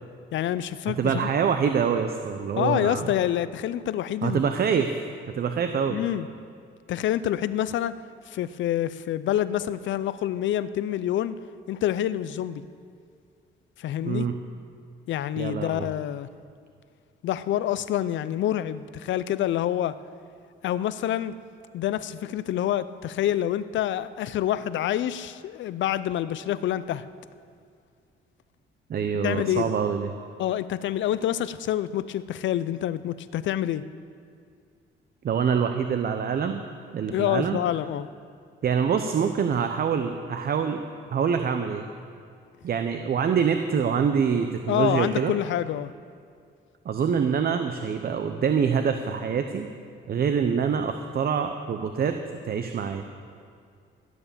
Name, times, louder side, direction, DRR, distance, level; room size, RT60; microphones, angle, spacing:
voice 1, 0.3-1.3 2.6-4.4 5.9-6.3 6.9-7.9 8.3-11.4 11.7-12.6 13.8-14.3 15.1-16.3 17.2-20.0 20.6-21.4 21.7-27.1 29.2-29.8 30.4-33.8 37.1-38.1 44.7-45.9, left 12 dB, 70° left, 15 dB, 0.5 m, -27 dB
voice 2, 0.9-3.1 4.2-4.9 5.4-6.0 14.1-14.4 15.4-15.9 28.9-30.1 35.2-36.6 36.9-37.6 38.6-40.8 41.1-41.9 42.6-45.3 46.8-49.7 50.1-52.2 52.4-53.0, right 7 dB, 50° right, 7 dB, 0.8 m, -25 dB
16.5 x 7.1 x 6.9 m, 2.3 s
cardioid pair, 90°, 20 cm